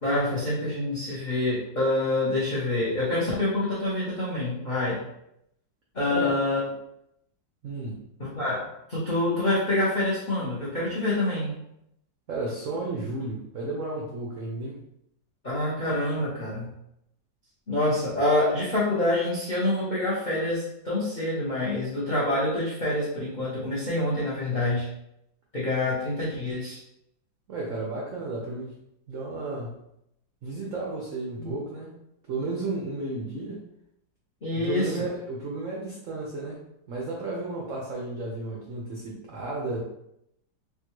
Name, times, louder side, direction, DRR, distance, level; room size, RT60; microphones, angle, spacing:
voice 1, 0.0-5.0 5.9-6.6 8.2-11.5 15.4-16.7 17.7-24.9 25.5-26.8 31.4-31.6 34.4-35.0, left 2 dB, 80° left, -7 dB, 0.4 m, -26 dB
voice 2, 7.6-8.0 12.3-14.8 27.5-28.8 29.1-29.9 30.4-31.9 32.3-33.6 34.6-36.6 36.9-39.8, right 2 dB, 85° right, -3 dB, 0.6 m, -33 dB
3.6 x 2.3 x 2.9 m, 0.79 s
omnidirectional pair, 2.1 m